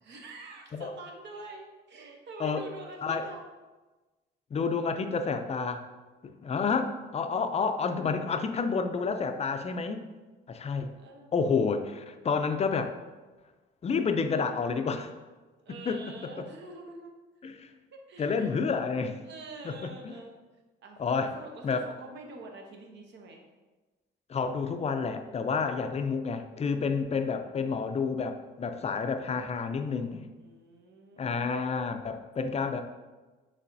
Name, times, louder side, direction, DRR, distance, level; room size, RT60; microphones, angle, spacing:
voice 1, 0.0-3.4 6.4-6.9 10.9-11.4 15.6-17.1 17.9-18.7 19.2-20.3 20.8-23.4 30.4-31.7, right 3 dB, 65° right, 2 dB, 0.8 m, -46 dB
voice 2, 4.5-5.9 6.2-10.1 10.5-10.9 11.3-12.9 13.8-15.1 15.9-16.5 17.4-17.6 18.2-19.2 19.6-20.1 21.0-21.3 21.6-21.9 24.3-30.3 31.2-32.8, left 5 dB, 35° left, 7 dB, 0.4 m, -30 dB
5.4 x 3.3 x 2.6 m, 1.2 s
cardioid pair, 90°, 20 cm